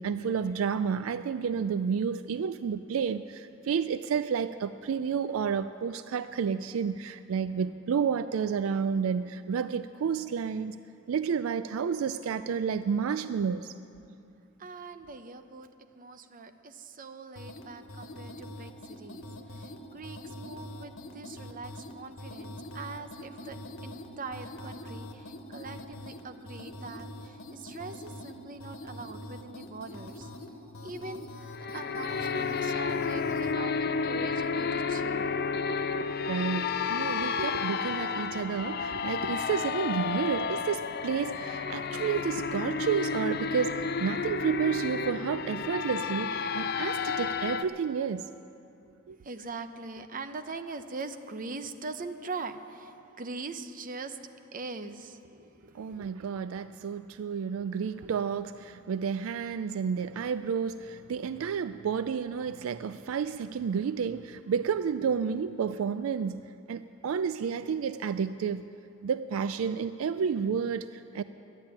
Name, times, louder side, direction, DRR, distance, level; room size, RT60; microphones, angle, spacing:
voice 1, 0.0-10.7 11.1-13.7 36.3-48.3 49.1-49.2 55.7-68.6 69.0-71.2, right 6 dB, 75° right, 13 dB, 0.4 m, -31 dB
voice 2, 14.6-15.7 16.0-30.3 30.8-31.5 31.7-35.4 36.0-36.1 49.2-54.2 54.5-56.0, right 3 dB, 40° right, 9 dB, 0.7 m, -42 dB
sound 1, 17.4-33.6, left 1 dB, 80° left, 1.3 m, -44 dB
sound 2, 31.5-47.6, left 5 dB, 50° left, 0.5 m, -31 dB
12.5 x 10.5 x 8.8 m, 2.6 s
head